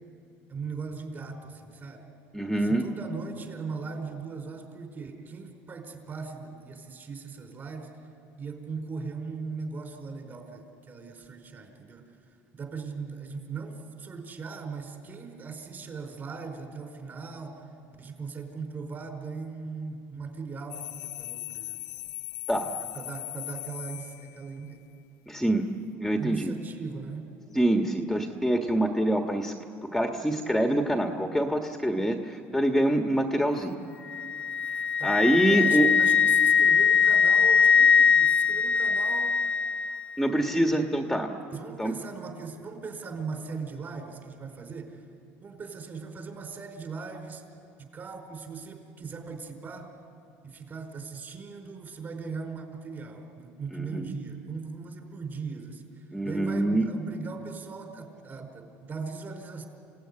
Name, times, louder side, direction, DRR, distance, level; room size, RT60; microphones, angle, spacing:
voice 1, 0.5-2.1 2.5-8.0 8.4-12.1 12.5-17.6 18.0-21.8 22.7-24.8 26.2-27.3 35.0-39.3 40.5-40.6 41.5-45.0 45.4-47.4 47.8-49.9 50.4-59.7, right 4 dB, 35° right, 4 dB, 4.7 m, -39 dB
voice 2, 2.3-2.9 22.5-22.7 25.3-25.6 26.0-26.5 27.5-29.5 29.9-33.8 35.0-35.9 40.2-41.3 41.8-41.9 53.7-54.1 56.1-56.9, right 1 dB, ahead, 3 dB, 1.5 m, -25 dB
sound 1, 20.7-24.7, left 19 dB, 65° left, 1.4 m, -39 dB
Wind instrument woodwind instrument, 34.1-40.1, left 6 dB, 20° left, 0.6 m, -21 dB
28.0 x 17.0 x 9.9 m, 2.5 s
cardioid pair, 110°, 6 cm